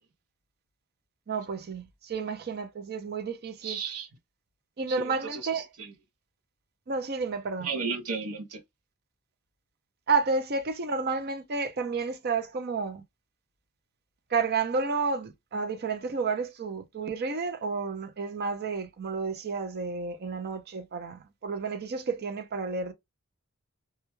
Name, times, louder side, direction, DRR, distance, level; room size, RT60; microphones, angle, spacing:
voice 1, 1.3-3.8 4.8-5.6 6.9-7.7 10.1-13.0 14.3-22.9, right 4 dB, 45° right, 0.5 m, -31 dB
voice 2, 3.6-4.1 4.9-5.9 7.6-8.6, right 5 dB, 85° right, 0.7 m, -34 dB
2.2 x 2.2 x 3.0 m
head